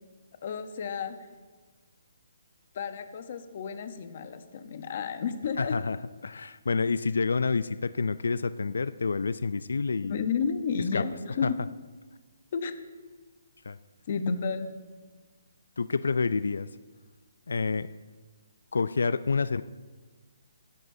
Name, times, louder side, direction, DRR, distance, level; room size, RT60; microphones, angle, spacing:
voice 1, 0.4-1.2 2.7-5.8 10.0-11.6 12.5-12.8 14.1-14.7, left 6 dB, 40° left, 9 dB, 0.8 m, -31 dB
voice 2, 5.6-6.0 6.2-10.3 10.9-11.0 11.4-11.5 13.7-13.8 15.8-16.7 17.5-17.9 18.7-19.6, left 4 dB, 90° left, 14 dB, 0.4 m, -28 dB
15.5 x 11.0 x 2.7 m, 1.4 s
hypercardioid pair, 170°, 0 cm